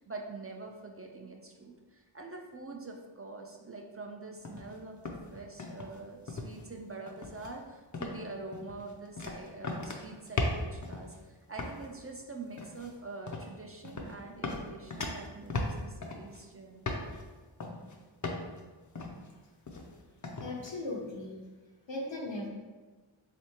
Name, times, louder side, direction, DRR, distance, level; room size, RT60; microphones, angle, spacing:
voice 1, 0.0-16.8, right 3 dB, 30° right, 1 dB, 0.4 m, -45 dB
sound 1, 4.4-4.8 5.0-6.0 6.3-6.6 7.1-7.5 7.9-8.3 8.5-11.2 11.6-11.9 12.5-12.9 13.3-13.5 13.8-14.1 14.4-16.4 16.9-17.2 17.6-18.0 18.2-18.6 19.0-19.3 19.7-20.0 20.2-20.7, left 2 dB, 40° left, 0.5 m, -37 dB
voice 2, 20.4-21.3 21.9-22.5, left 2 dB, 70° left, -2 dB, 0.9 m, -37 dB
3.7 x 3.3 x 2.9 m, 1.3 s
wide cardioid pair, 55°, 46 cm